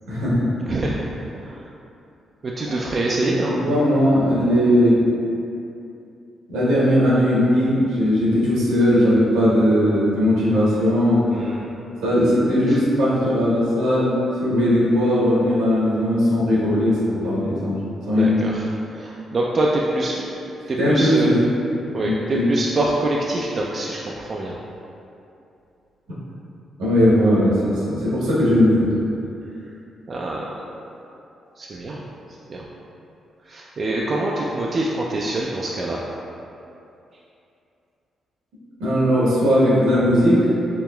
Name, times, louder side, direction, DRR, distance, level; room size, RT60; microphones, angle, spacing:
voice 1, 0.1-0.5 3.2-5.0 6.5-11.2 12.0-14.1 14.4-17.8 18.1-18.4 20.8-21.3 21.9-22.4 26.8-28.9 38.8-40.5, equal, 80° right, -7 dB, 0.9 m, -18 dB
voice 2, 0.7-1.1 1.5-1.6 2.4-3.7 11.3-11.8 18.2-18.6 18.9-20.2 20.7-21.3 21.9-24.6 30.1-30.4 31.6-32.0 32.5-32.7 33.5-36.0, right 2 dB, 50° right, -3 dB, 0.3 m, -25 dB
4.6 x 2.9 x 2.2 m, 2.7 s
hypercardioid pair, 45°, 0 cm